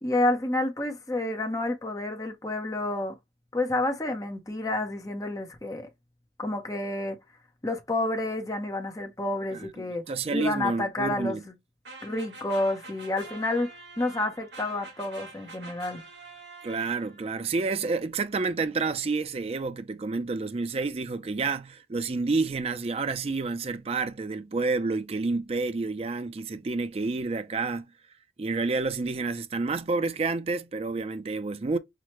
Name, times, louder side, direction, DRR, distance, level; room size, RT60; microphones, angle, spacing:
voice 1, 0.0-3.2 3.5-5.9 6.4-7.2 7.6-10.0 10.3-11.4 12.0-13.7 14.0-16.0, left 2 dB, 20° left, 0.7 m, -29 dB
voice 2, 9.5-11.4 16.6-27.8 28.4-31.8, right 3 dB, 35° right, 0.4 m, -29 dB
sound 1, 11.8-17.4, right 3 dB, 80° right, 1.4 m, -46 dB
5.8 x 2.1 x 3.0 m
head